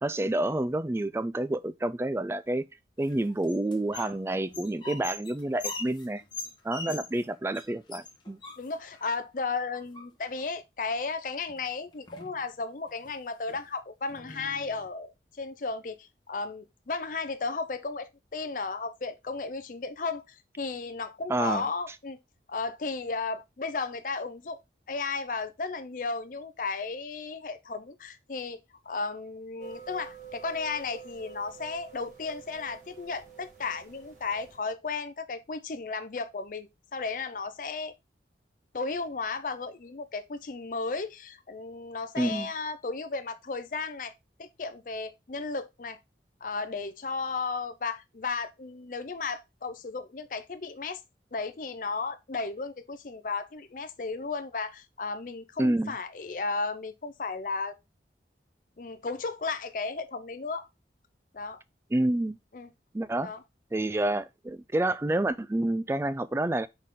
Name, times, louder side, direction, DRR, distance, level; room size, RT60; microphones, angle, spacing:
voice 1, 0.0-2.7 3.0-6.2 6.6-8.4 21.3-21.7 42.2-42.5 55.6-55.9 61.9-62.4 62.9-63.3 63.7-66.7, right 1 dB, 15° right, 0.3 m, -28 dB
sound 1, 3.0-4.2 4.4-7.2 7.5-7.6 7.9-9.0 9.7-10.4 11.5-11.6 11.9-12.4 12.9-13.1 13.5-13.6 14.1-14.9, left 4 dB, 25° left, 1.3 m, -41 dB
voice 2, 8.6-22.2 22.5-24.6 24.9-28.6 28.9-37.9 38.7-44.1 44.4-46.0 46.4-51.0 51.3-57.8 58.8-60.7 61.3-61.6 62.5-62.7 63.1-63.4, left 4 dB, 45° left, 0.5 m, -34 dB
sound 2, 29.6-34.6, right 7 dB, 45° right, 1.6 m, -48 dB
6.3 x 4.0 x 3.6 m
head